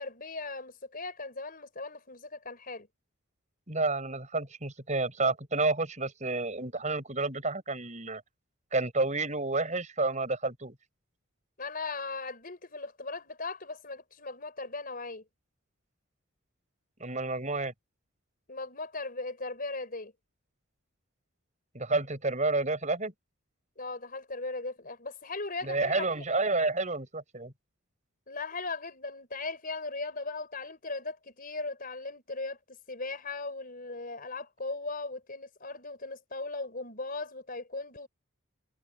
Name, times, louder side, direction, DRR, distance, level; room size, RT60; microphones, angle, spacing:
voice 1, 0.0-2.9 11.6-15.2 18.5-20.1 23.8-26.2 28.3-38.1, left 3 dB, 40° left, 5.2 m, -38 dB
voice 2, 3.7-8.2 8.7-10.7 17.0-17.7 21.7-23.1 25.6-27.5, right 3 dB, 35° right, 7.3 m, -30 dB
head